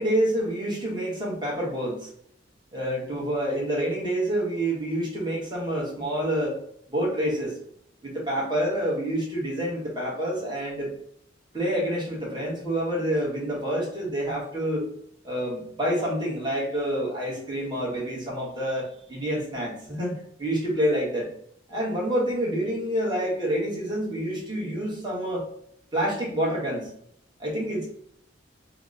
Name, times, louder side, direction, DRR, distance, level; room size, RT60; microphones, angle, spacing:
voice 1, 0.0-2.1 2.7-6.6 6.9-7.5 8.0-10.9 11.5-14.9 15.2-21.3 21.7-25.4 25.9-26.9 27.4-27.9, right 1 dB, 25° right, -4 dB, 1.0 m, -27 dB
2.9 x 2.0 x 3.6 m, 0.70 s
head